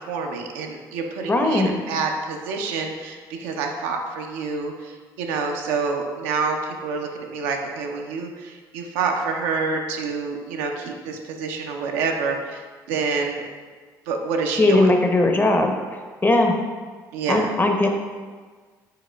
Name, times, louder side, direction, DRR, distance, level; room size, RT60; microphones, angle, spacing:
voice 1, 0.0-13.4 14.1-14.9 17.1-17.5 17.8-17.9, right 4 dB, 80° right, 2 dB, 0.4 m, -27 dB
voice 2, 1.3-1.7 14.6-15.8 16.2-16.5 17.3-17.9, left 2 dB, 20° left, 3 dB, 0.6 m, -18 dB
4.7 x 4.1 x 2.2 m, 1.5 s
hypercardioid pair, 55°, 10 cm